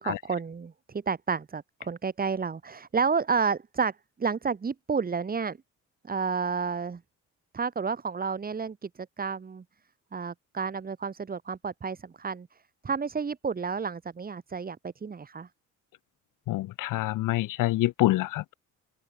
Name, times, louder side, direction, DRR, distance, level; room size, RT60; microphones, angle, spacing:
voice 1, 0.0-5.6 6.0-7.0 7.5-8.9 9.2-9.6 10.1-12.5 12.8-15.5, right 5 dB, 30° right, 6.4 m, -30 dB
voice 2, 16.5-18.4, left 16 dB, 85° left, 1.9 m, -26 dB
cardioid pair, 140°, 31 cm